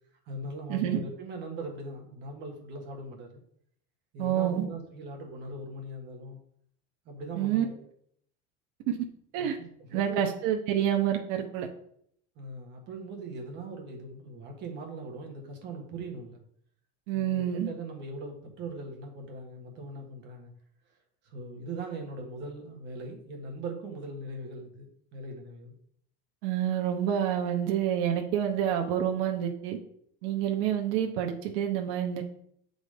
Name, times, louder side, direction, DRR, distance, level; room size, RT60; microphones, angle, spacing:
voice 1, 0.3-3.4 4.1-6.4 7.0-7.9 9.3-10.2 12.3-16.4 17.1-20.5 21.2-25.7, right 2 dB, 35° right, 2 dB, 1.5 m, -40 dB
voice 2, 4.2-4.6 7.4-7.6 8.9-9.0 9.3-9.6 9.9-11.7 17.1-17.7 26.4-29.8 30.2-32.2, right 10 dB, 55° right, 2 dB, 0.9 m, -28 dB
8.0 x 4.0 x 5.0 m, 0.68 s
cardioid pair, 180°, 31 cm